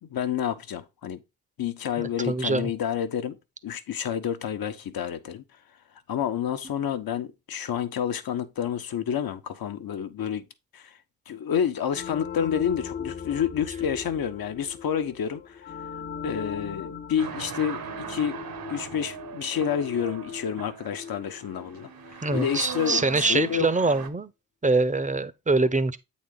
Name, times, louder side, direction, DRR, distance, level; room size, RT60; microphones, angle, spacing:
voice 1, 0.0-1.2 1.6-3.4 3.6-5.4 6.1-10.5 10.7-11.0 11.3-15.7 16.2-17.8 18.1-18.4 18.7-23.7, left 8 dB, 55° left, 1.1 m, -29 dB
voice 2, 2.0-2.7 22.2-24.3 24.6-26.0, right 3 dB, 15° right, 0.9 m, -24 dB
sound 1, 11.9-22.4, left 7 dB, 25° left, 0.8 m, -39 dB
sound 2, 17.2-24.1, right 8 dB, 55° right, 1.3 m, -39 dB
8.2 x 4.2 x 3.8 m
hypercardioid pair, 45°, 44 cm